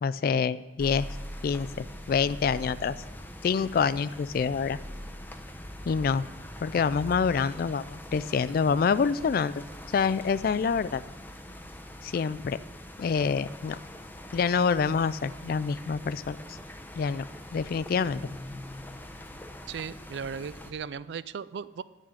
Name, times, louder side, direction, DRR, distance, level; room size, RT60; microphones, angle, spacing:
voice 1, 0.0-1.1 1.4-2.9 3.4-4.8 5.9-6.3 6.6-9.7 9.9-11.0 12.0-12.6 13.0-13.8 14.3-16.4 17.0-17.2 17.5-18.2, left 6 dB, 55° left, 17 dB, 0.3 m, -26 dB
sound 1, 0.8-20.7, left 1 dB, 10° left, 0.8 m, -43 dB
voice 2, 19.7-21.8, right 6 dB, 85° right, 16 dB, 0.4 m, -37 dB
11.0 x 6.4 x 9.0 m, 1.1 s
head